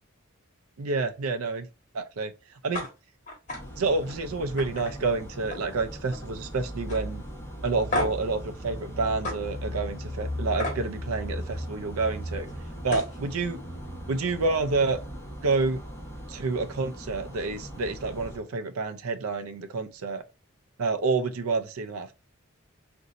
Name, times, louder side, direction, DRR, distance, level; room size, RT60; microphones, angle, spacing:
voice 1, 0.8-1.7 1.9-2.3 2.6-2.9 3.8-7.2 7.6-12.5 12.8-13.6 14.1-15.0 15.4-15.8 16.3-20.2 20.8-22.1, right 3 dB, 85° right, 0.5 m, -28 dB
skateboard noises, 2.7-2.9 3.3-3.6 4.0-4.2 4.6-5.7 6.0-6.4 6.9-7.0 7.9-8.3 9.2-9.4 10.6-10.8 12.5-12.6 12.9-13.2, left 1 dB, 35° left, 1.5 m, -32 dB
sound 1, 3.5-18.4, equal, 10° left, 1.3 m, -38 dB
4.0 x 2.6 x 3.8 m
head